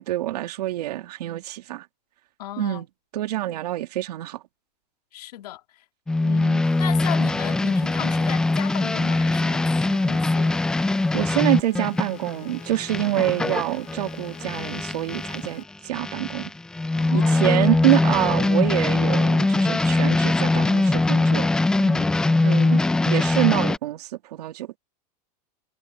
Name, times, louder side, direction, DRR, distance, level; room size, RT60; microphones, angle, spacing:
voice 1, 0.0-1.9 2.6-2.9 3.1-4.4 11.1-16.5 17.1-21.5 22.4-24.8, right 15 dB, 80° right, 2.4 m, -26 dB
voice 2, 2.4-2.8 5.1-5.6 6.2-10.6 17.0-17.7 21.8-22.2, left 13 dB, 80° left, 2.7 m, -36 dB
sound 1, 6.1-15.5 15.9-23.8, left 2 dB, 5° left, 0.3 m, -22 dB
sound 2, 6.6-15.6, left 21 dB, 40° left, 4.0 m, -48 dB
supercardioid pair, 160°, 20 cm